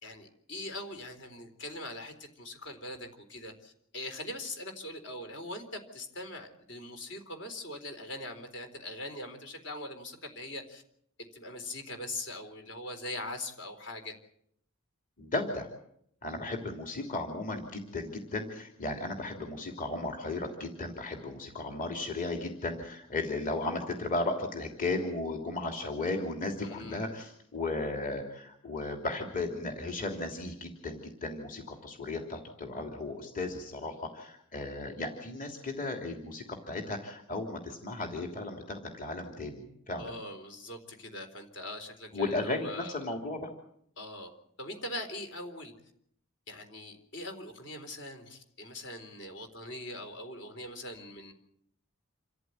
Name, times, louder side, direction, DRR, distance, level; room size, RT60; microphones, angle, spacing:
voice 1, 0.0-10.8 11.3-14.1 26.6-27.1 39.9-43.0 44.0-44.3 44.6-45.7 46.5-51.3, left 1 dB, 60° left, 6 dB, 4.0 m, -42 dB
voice 2, 15.2-15.7 16.2-40.1 42.1-43.5, left 2 dB, 40° left, 3 dB, 3.1 m, -35 dB
28.0 x 14.5 x 9.3 m, 0.70 s
head